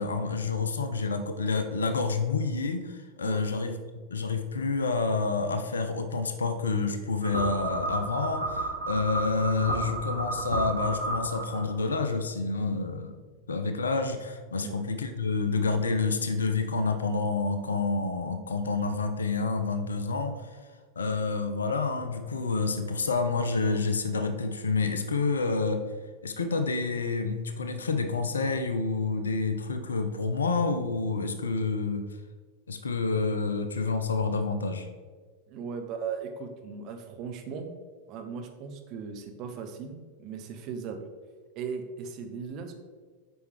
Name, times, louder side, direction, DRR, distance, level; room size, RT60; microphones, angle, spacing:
voice 1, 0.0-3.8 4.1-13.2 13.5-20.5 21.0-25.8 26.2-32.0 32.7-34.9, left 4 dB, 70° left, 8 dB, 0.6 m, -28 dB
voice 2, 3.2-3.5 14.6-14.9 35.5-37.7 38.1-41.0 41.6-42.7, right 6 dB, 40° right, 5 dB, 0.8 m, -38 dB
sound 1, 7.2-12.0, right 2 dB, 75° right, 1.9 m, -32 dB
7.8 x 5.3 x 3.4 m, 1.5 s
figure-of-eight pair, 90°, 0 cm